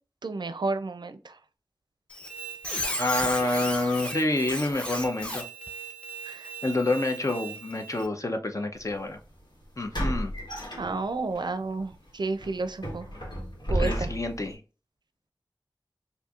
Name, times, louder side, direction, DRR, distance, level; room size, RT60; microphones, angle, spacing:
voice 1, 0.2-1.4 6.2-6.5 10.0-10.1 10.8-13.1 13.7-14.1, right 3 dB, 70° right, 10 dB, 0.4 m, -31 dB
Squeak, 2.1-8.1, right 1 dB, 15° left, 1.0 m, -36 dB
voice 2, 3.0-5.4 6.6-9.2 9.8-10.3 13.7-14.6, left 2 dB, 45° left, 5 dB, 0.7 m, -28 dB
sound 1, 8.8-9.0 9.9-11.4 11.8-12.0 12.4-14.5, equal, 70° left, 1.6 m, -32 dB
4.3 x 2.6 x 2.4 m, 0.33 s
wide cardioid pair, 45°, 8 cm